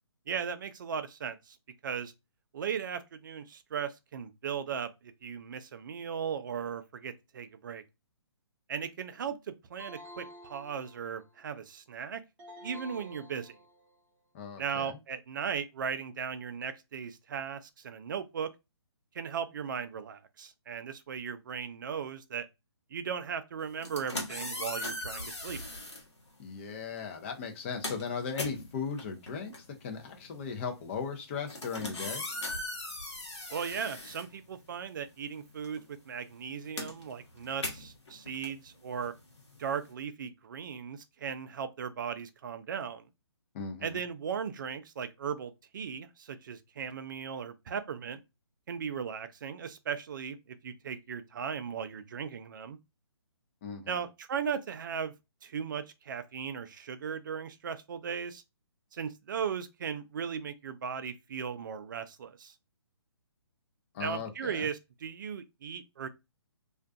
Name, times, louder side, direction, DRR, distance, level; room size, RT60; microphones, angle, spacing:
voice 1, 0.3-1.6 1.8-2.1 2.5-7.8 8.7-12.2 12.6-13.6 14.6-18.5 19.1-22.5 22.9-25.6 33.5-35.8 36.1-39.1 39.6-43.0 43.8-48.2 48.7-52.8 53.9-55.1 55.4-58.4 58.9-62.5 64.0-66.1, right 7 dB, 45° right, 0.4 m, -37 dB
sound 1, 9.8-11.4 12.4-14.0, equal, 10° right, 0.7 m, -50 dB
voice 2, 14.3-15.0 26.4-32.2 43.5-44.0 53.6-54.0 63.9-64.7, left 6 dB, 25° left, 0.6 m, -37 dB
sound 2, 23.7-26.1 27.0-27.2 27.5-35.0 35.3-39.9, left 2 dB, 75° left, 1.0 m, -40 dB
2.5 x 2.2 x 2.3 m
figure-of-eight pair, 140°, 15 cm